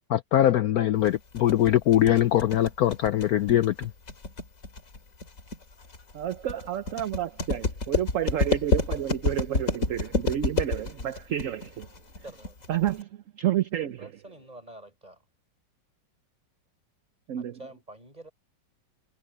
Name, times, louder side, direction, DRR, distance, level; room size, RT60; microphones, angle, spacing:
voice 1, 0.1-3.9, left 12 dB, 65° left, 1.0 m, -22 dB
sound 1, 1.1-13.0, left 3 dB, 45° left, 2.9 m, -29 dB
voice 2, 6.1-11.9 12.7-14.1 17.3-17.6, right 11 dB, 60° right, 0.9 m, -30 dB
voice 3, 12.2-12.6 14.0-15.3 17.4-18.3, right 1 dB, 20° right, 5.8 m, -47 dB
omnidirectional pair, 1.9 m